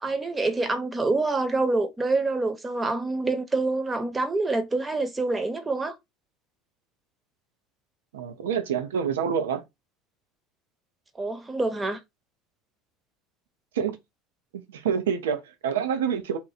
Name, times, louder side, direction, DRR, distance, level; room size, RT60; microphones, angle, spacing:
voice 1, 0.0-5.9 11.2-12.0, right 3 dB, 20° right, 0.9 m, -26 dB
voice 2, 8.1-9.6 13.8-14.0 14.5-16.4, right 7 dB, 80° right, 0.5 m, -27 dB
2.9 x 2.3 x 4.0 m
hypercardioid pair, 70°, 0 cm